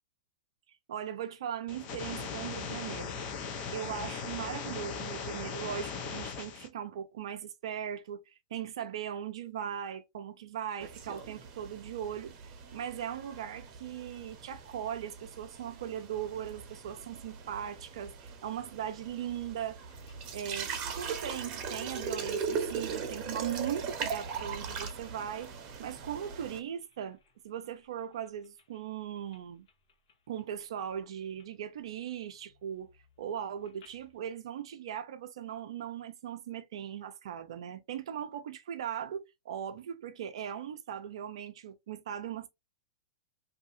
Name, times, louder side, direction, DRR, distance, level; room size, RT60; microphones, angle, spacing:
voice 1, 0.9-3.1 3.7-12.3 12.7-19.8 20.3-25.5 25.8-27.2 27.4-29.7 30.3-32.9 33.2-42.5, right 9 dB, 70° right, 0.5 m, -39 dB
sound 1, 1.7-6.7, left 5 dB, 40° left, 0.7 m, -38 dB
sound 2, 10.8-26.6, right 6 dB, 35° right, 0.9 m, -40 dB
sound 3, 19.9-27.3 27.7-28.8 29.2-29.4 29.7-30.6 30.9-31.4 31.8-34.2, left 4 dB, 55° left, 1.1 m, -56 dB
2.7 x 2.6 x 2.4 m
hypercardioid pair, 130°, 3 cm